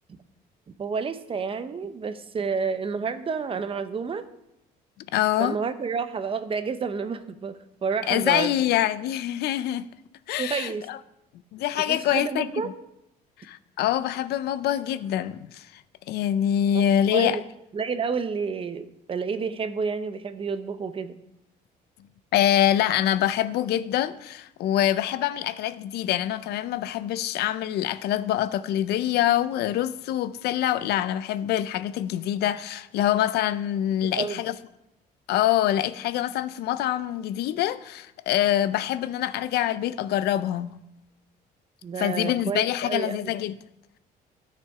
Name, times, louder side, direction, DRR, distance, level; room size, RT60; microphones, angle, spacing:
voice 1, 0.8-4.3 5.4-8.5 10.4-10.9 11.8-12.7 16.7-17.4 17.7-21.1 34.2-34.4 41.8-43.3, right 5 dB, 35° right, 0.8 m, -30 dB
voice 2, 5.1-5.6 8.1-9.8 10.3-11.0 11.5-12.5 13.4-15.7 16.1-17.4 22.3-34.5 35.3-40.7 42.0-43.5, left 11 dB, 75° left, 0.5 m, -25 dB
12.5 x 6.9 x 4.8 m
cardioid pair, 110°, 17 cm